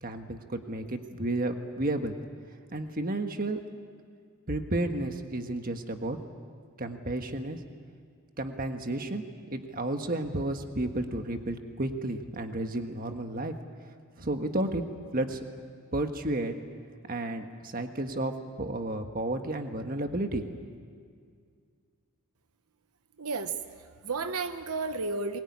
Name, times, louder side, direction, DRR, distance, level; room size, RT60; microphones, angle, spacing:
voice 1, 0.0-2.2 2.7-3.6 4.5-6.2 6.8-7.6 8.4-9.2 9.5-13.5 14.2-14.8 15.1-15.4 15.9-16.5 17.1-18.3 18.6-20.6, right 1 dB, 40° right, 6 dB, 1.5 m, -32 dB
voice 2, 23.2-25.4, right 4 dB, 85° right, 9 dB, 1.0 m, -33 dB
22.5 x 21.5 x 9.7 m, 2.1 s
head